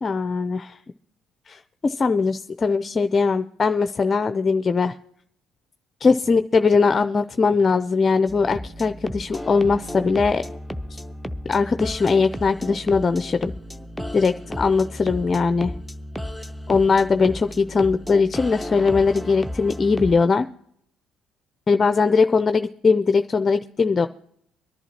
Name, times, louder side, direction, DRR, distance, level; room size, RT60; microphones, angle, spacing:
voice 1, 0.0-0.7 1.5-5.0 6.0-10.4 11.5-13.5 14.1-15.7 16.7-20.5 21.7-24.1, left 4 dB, 35° left, 9 dB, 0.5 m, -20 dB
sound 1, 8.3-20.2, equal, ahead, 0.7 m, -34 dB
23.5 x 11.0 x 3.0 m, 0.69 s
hypercardioid pair, 60°, 0 cm